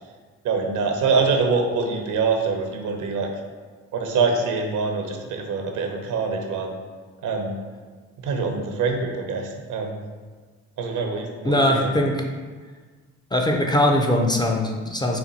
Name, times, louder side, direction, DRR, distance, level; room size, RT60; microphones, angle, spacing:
voice 1, 0.4-3.3 3.9-6.7 7.2-7.6 8.2-10.0 10.8-11.9, right 4 dB, 80° right, 3 dB, 0.7 m, -24 dB
voice 2, 11.4-12.2 13.3-15.2, left 1 dB, 15° left, 1 dB, 0.4 m, -21 dB
4.3 x 2.3 x 4.0 m, 1.4 s
cardioid pair, 90°, 30 cm